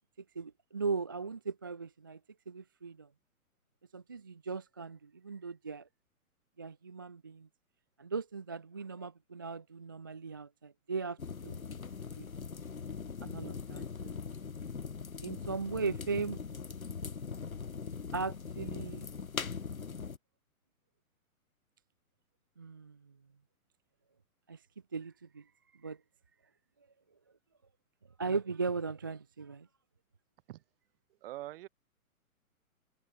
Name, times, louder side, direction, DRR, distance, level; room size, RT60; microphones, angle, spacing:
voice 1, 0.4-2.2 2.5-3.1 3.9-5.9 6.6-7.5 8.0-11.2 11.4-11.6 12.2-12.3 13.2-14.1 15.2-16.4 18.1-19.1 22.6-23.0 24.5-24.6 24.9-25.4 25.8-26.0 28.2-29.7, right 4 dB, 15° right, 0.4 m, -38 dB
sound 1, 11.2-20.2, left 5 dB, 70° left, 5.4 m, -41 dB
voice 2, 31.2-31.7, right 15 dB, 40° right, 4.4 m, -43 dB
figure-of-eight pair, 125°, 43 cm